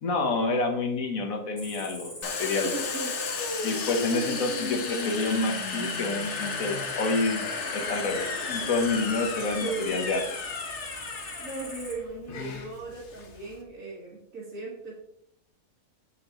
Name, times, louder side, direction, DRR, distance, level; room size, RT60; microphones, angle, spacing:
voice 1, 0.0-2.7 3.6-7.5 7.7-10.2, left 3 dB, 75° left, 4 dB, 1.6 m, -28 dB
Cricket, 1.6-11.9, left 1 dB, 15° left, 1.5 m, -42 dB
Domestic sounds home sounds, 2.2-13.6, left 4 dB, 55° left, 1.2 m, -34 dB
voice 2, 2.6-3.1 9.6-10.1 11.4-14.9, right 3 dB, 70° right, -6 dB, 2.2 m, -37 dB
7.3 x 7.1 x 3.1 m, 0.72 s
omnidirectional pair, 1.5 m